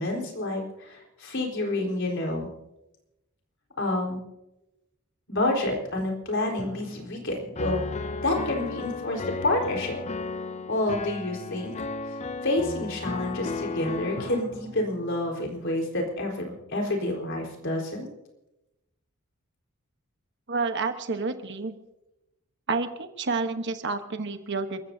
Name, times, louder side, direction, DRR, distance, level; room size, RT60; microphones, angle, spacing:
voice 1, 0.0-2.5 3.8-4.2 5.3-7.8 8.2-10.0 10.7-11.7 12.1-12.2 12.4-18.1, left 1 dB, 60° left, 0 dB, 4.3 m, -28 dB
sound 1, 6.6-9.9 14.2-17.5, left 1 dB, 90° left, 6.9 m, -48 dB
Piano, 7.6-14.4, left 4 dB, 30° left, 0.5 m, -34 dB
voice 2, 20.5-21.7 22.7-24.8, right 4 dB, 55° right, 7 dB, 1.1 m, -29 dB
28.5 x 14.5 x 2.8 m, 0.93 s
head